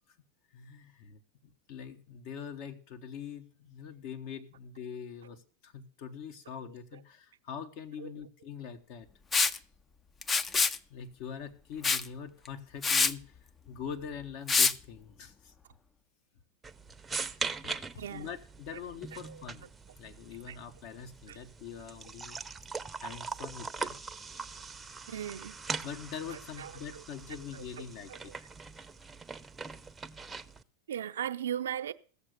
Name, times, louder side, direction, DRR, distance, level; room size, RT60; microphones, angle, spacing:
voice 1, 0.5-9.1 10.9-13.3 13.6-15.5 17.6-19.7 20.0-22.4 23.0-24.0 25.8-28.4, left 7 dB, 60° left, 1.5 m, -43 dB
voice 2, 6.6-7.0 8.0-8.1 18.0-18.4 18.7-18.8 19.1-19.4 20.5-20.6 21.3-21.4 25.1-25.6 26.3-27.0 27.5-28.3 30.9-31.9, right 10 dB, 85° right, 0.6 m, -39 dB
Liquid, 9.3-9.6 10.2-10.8 11.8-12.1 12.5-12.6 12.8-13.1 14.5-14.7, left 4 dB, 25° left, 0.5 m, -25 dB
sound 1, 16.6-30.6, right 4 dB, 15° right, 0.7 m, -41 dB
15.5 x 7.0 x 6.6 m
hypercardioid pair, 105°, 0 cm